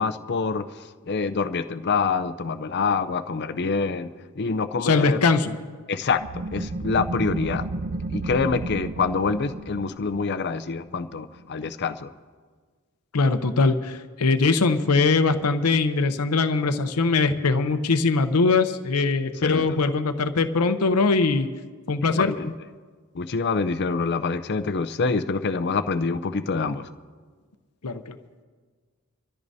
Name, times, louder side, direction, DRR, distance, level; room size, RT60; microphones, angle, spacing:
voice 1, 0.0-5.2 5.9-7.6 8.1-12.1 19.4-19.8 22.0-22.5 23.1-26.9, left 4 dB, 50° left, 11 dB, 0.5 m, -26 dB
voice 2, 4.8-5.6 13.1-21.5 21.9-22.3 27.8-28.2, left 3 dB, 90° left, 9 dB, 0.7 m, -21 dB
sound 1, 6.2-11.4, right 2 dB, 40° right, 0.4 m, -33 dB
25.0 x 13.5 x 2.7 m, 1.5 s
head